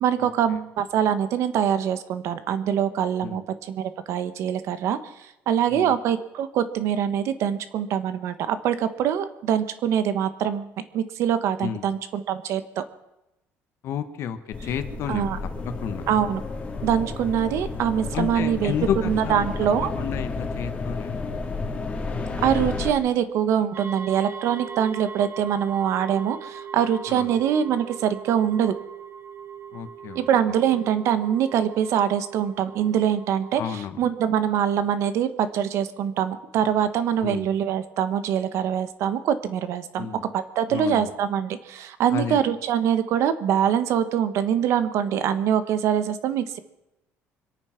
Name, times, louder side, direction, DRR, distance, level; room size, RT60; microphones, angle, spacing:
voice 1, 0.0-12.8 15.1-15.4 16.1-16.4 16.8-18.7 19.0-19.9 22.4-28.7 30.1-40.1 40.3-46.6, right 9 dB, 65° right, 11 dB, 1.4 m, -24 dB
voice 2, 13.8-15.2 15.6-16.0 18.1-19.5 20.0-21.2 27.1-27.3 29.7-30.3 33.6-34.0 37.2-37.5 40.0-40.2 40.7-41.1 42.1-42.4, left 8 dB, 60° left, 10 dB, 1.4 m, -31 dB
sound 1, 14.5-22.9, left 3 dB, 25° left, 2.0 m, -31 dB
sound 2, 23.7-33.6, right 7 dB, 45° right, 1.9 m, -40 dB
25.5 x 9.0 x 5.9 m, 0.91 s
cardioid pair, 145°, 5 cm